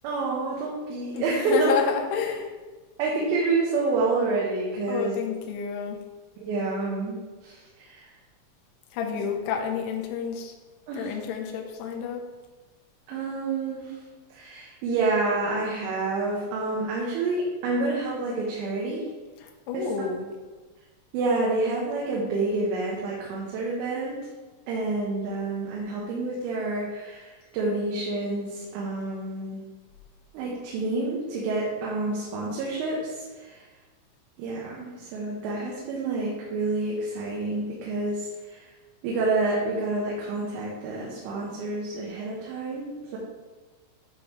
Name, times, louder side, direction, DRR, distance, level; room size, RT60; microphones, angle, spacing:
voice 1, 0.0-1.7 3.0-5.2 6.4-7.2 7.4-8.1 10.9-11.1 13.1-13.9 14.3-19.0 19.7-19.9 21.1-24.2 24.7-29.6 30.3-33.6 34.4-38.6 39.0-43.2, right 3 dB, 80° right, -5 dB, 3.4 m, -28 dB
voice 2, 1.1-2.5 4.9-6.0 8.9-10.5 10.9-12.2 19.4-20.3, left 6 dB, 80° left, 1 dB, 3.0 m, -30 dB
11.0 x 3.8 x 3.1 m, 1.3 s
omnidirectional pair, 5.9 m